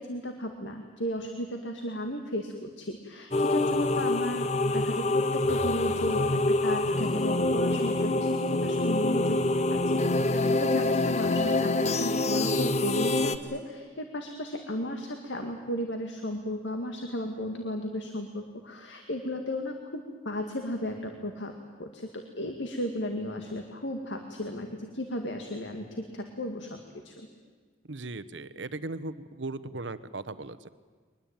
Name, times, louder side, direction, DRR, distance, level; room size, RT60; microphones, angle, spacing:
voice 1, 0.0-9.4 9.7-10.3 10.6-21.5 21.8-26.8 27.0-27.3, left 1 dB, 80° left, 4 dB, 2.0 m, -35 dB
sound 1, 3.3-13.4, left 2 dB, 35° left, 0.9 m, -26 dB
voice 2, 27.9-30.7, right 2 dB, 85° right, 14 dB, 1.1 m, -37 dB
23.0 x 21.0 x 9.0 m, 1.5 s
head